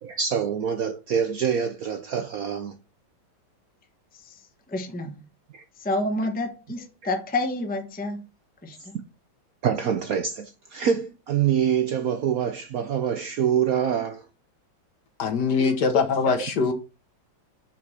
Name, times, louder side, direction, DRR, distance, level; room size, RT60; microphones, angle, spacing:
voice 1, 0.0-2.8 5.5-5.6 8.8-9.0 9.6-14.3, right 8 dB, 65° right, 0.9 m, -25 dB
voice 2, 4.7-5.2 5.8-8.2 8.6-9.0, left 2 dB, 5° left, 0.7 m, -29 dB
voice 3, 15.2-16.7, left 5 dB, 60° left, 1.7 m, -22 dB
6.0 x 4.7 x 5.6 m
omnidirectional pair, 2.1 m